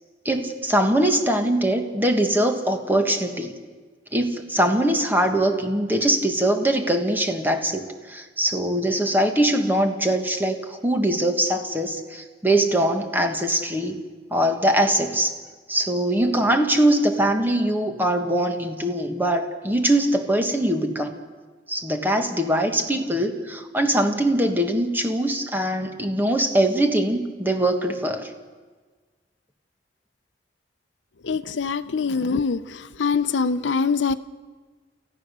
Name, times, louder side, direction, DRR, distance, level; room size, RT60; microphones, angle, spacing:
voice 1, 0.2-3.5 4.1-14.0 14.3-15.3 15.7-21.1 21.7-28.3, right 1 dB, 10° right, 5 dB, 1.5 m, -22 dB
voice 2, 31.2-32.6 33.0-34.1, left 5 dB, 80° left, 10 dB, 0.6 m, -23 dB
29.0 x 14.5 x 6.8 m, 1.4 s
head